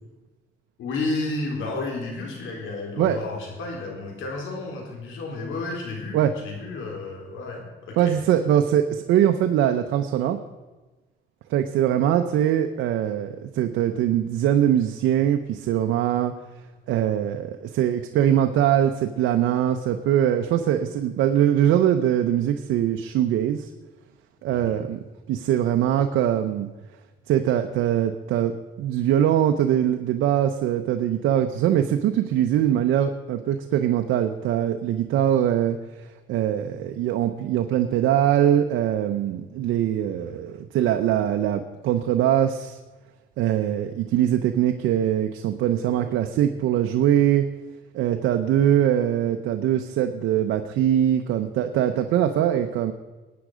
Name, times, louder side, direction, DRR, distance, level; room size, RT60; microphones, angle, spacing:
voice 1, 0.8-8.1 24.5-24.8, left 2 dB, 80° left, 1 dB, 4.0 m, -32 dB
voice 2, 8.0-10.4 11.5-16.3 16.9-23.7 24.4-25.0 25.3-26.7 27.3-42.8 43.4-47.4 47.9-52.9, right 10 dB, 90° right, 6 dB, 0.8 m, -22 dB
17.0 x 9.5 x 5.0 m, 1.2 s
cardioid pair, 90°, 20 cm